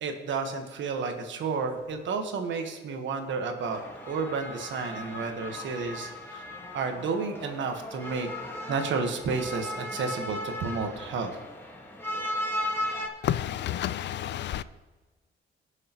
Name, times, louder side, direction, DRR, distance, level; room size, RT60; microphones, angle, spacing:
voice 1, 0.0-3.8 4.1-6.5 6.7-8.3 8.7-11.4 13.2-13.3, right 4 dB, 70° right, 1.4 m, -31 dB
sound 1, 3.6-13.1, left 1 dB, 10° left, 1.7 m, -36 dB
voice 2, 13.2-14.6, left 11 dB, 60° left, 0.4 m, -30 dB
17.0 x 6.5 x 3.0 m
cardioid pair, 90°, 20 cm